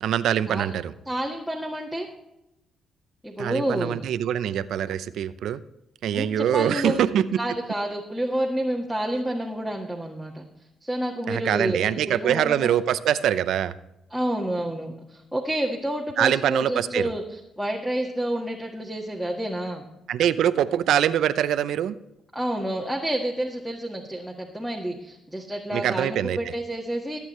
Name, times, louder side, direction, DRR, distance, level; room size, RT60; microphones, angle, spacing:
voice 1, 0.0-0.9 3.4-5.6 6.0-7.4 11.3-13.7 16.2-17.1 20.1-22.0 25.7-26.4, right 10 dB, 75° right, 14 dB, 0.6 m, -24 dB
voice 2, 1.0-2.1 3.2-4.0 6.1-7.0 7.4-10.4 10.8-12.7 14.1-19.8 22.3-27.2, right 1 dB, ahead, 0 dB, 1.6 m, -29 dB
20.0 x 8.4 x 3.2 m, 0.90 s
cardioid pair, 90°, 0 cm